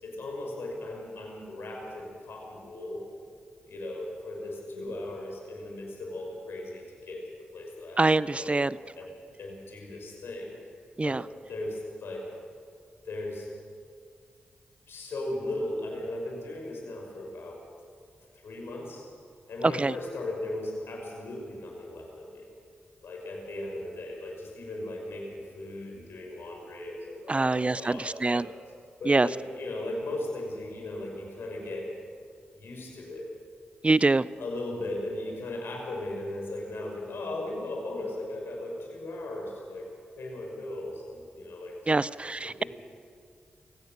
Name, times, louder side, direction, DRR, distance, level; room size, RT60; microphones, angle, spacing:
voice 1, 0.0-3.0 3.7-7.2 7.5-8.0 8.3-8.6 9.0-10.5 11.0-12.3 13.0-13.5 14.9-17.6 18.3-19.1 19.5-22.5 23.0-28.5 29.0-31.9 32.5-33.3 34.4-39.9 40.2-42.0 42.4-42.7, left 1 dB, 75° left, 0 dB, 5.7 m, -37 dB
voice 2, 8.0-8.8 11.0-11.2 19.6-19.9 27.3-28.5 29.1-29.3 33.8-34.3 41.9-42.6, right 3 dB, 30° right, 19 dB, 0.6 m, -24 dB
23.0 x 17.0 x 6.7 m, 2.2 s
supercardioid pair, 40°, 4 cm